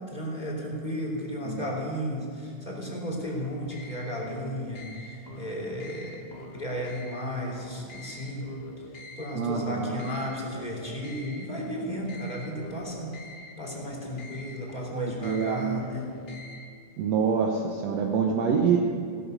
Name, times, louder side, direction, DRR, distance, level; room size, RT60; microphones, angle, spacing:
voice 1, 0.1-8.6 9.2-13.1 13.6-16.1, equal, 15° left, -3 dB, 3.0 m, -34 dB
voice 2, 1.5-1.8 9.3-10.0 14.9-15.8 17.0-18.8, right 6 dB, 65° right, 1 dB, 2.0 m, -26 dB
sound 1, 3.2-16.7, left 2 dB, 45° left, 0.8 m, -45 dB
17.0 x 11.5 x 6.7 m, 2.3 s
omnidirectional pair, 3.5 m